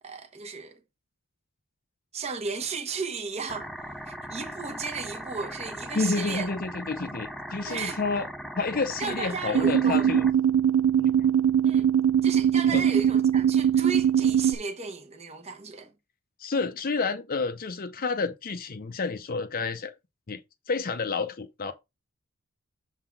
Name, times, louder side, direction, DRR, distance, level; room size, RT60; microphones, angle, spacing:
voice 1, 0.0-0.7 2.1-3.7 4.1-6.5 7.7-8.0 9.0-10.0 11.6-11.9 12.2-15.9, right 4 dB, 30° right, 1.0 m, -34 dB
sound 1, 3.5-10.3, equal, ahead, 0.6 m, -39 dB
voice 2, 5.9-8.3 8.5-10.3 11.0-11.3 12.7-12.9 16.4-19.9 20.3-20.4 20.7-21.7, left 4 dB, 40° left, 0.6 m, -30 dB
sound 2, 9.5-14.5, right 8 dB, 75° right, 0.6 m, -22 dB
7.2 x 3.8 x 5.9 m
head